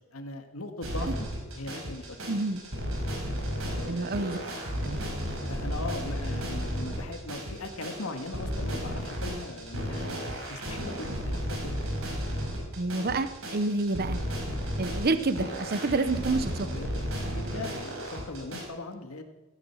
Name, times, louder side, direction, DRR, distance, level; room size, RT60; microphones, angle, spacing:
voice 1, 0.1-1.1 1.6-2.2 3.7-4.2 5.4-10.2 10.5-11.7 16.6-17.1 17.3-19.2, left 2 dB, 85° left, 5 dB, 1.8 m, -39 dB
sound 1, 0.8-18.6, equal, 70° right, 4.9 m, -33 dB
voice 2, 2.3-2.6 3.9-4.4 4.8-5.0 12.8-14.2 14.8-16.7, right 3 dB, 45° right, 11 dB, 0.8 m, -28 dB
16.5 x 10.5 x 7.1 m, 1.1 s
head